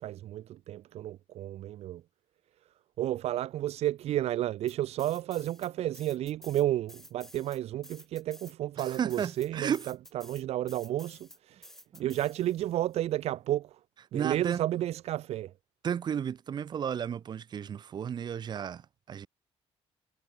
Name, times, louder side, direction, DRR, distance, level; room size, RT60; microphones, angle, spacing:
voice 1, 0.0-2.0 3.0-13.8 14.1-15.5, right 13 dB, 65° right, 0.8 m, -32 dB
sound 1, 4.7-5.7 5.9-12.8, left 1 dB, 5° left, 4.2 m, -52 dB
voice 2, 8.8-9.8 11.9-12.1 14.1-14.6 15.8-19.3, right 8 dB, 40° right, 1.8 m, -33 dB
cardioid pair, 180°, 12 cm